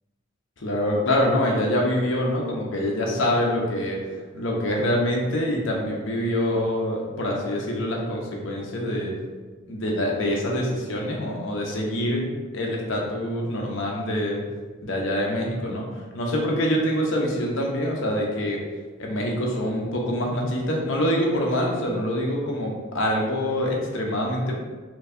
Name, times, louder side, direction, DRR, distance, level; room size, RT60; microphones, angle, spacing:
voice 1, 0.6-4.0 4.3-9.2 9.7-14.4 14.8-18.6 19.0-24.5, equal, 70° left, -1 dB, 0.8 m, -25 dB
4.4 x 2.7 x 2.6 m, 1.4 s
head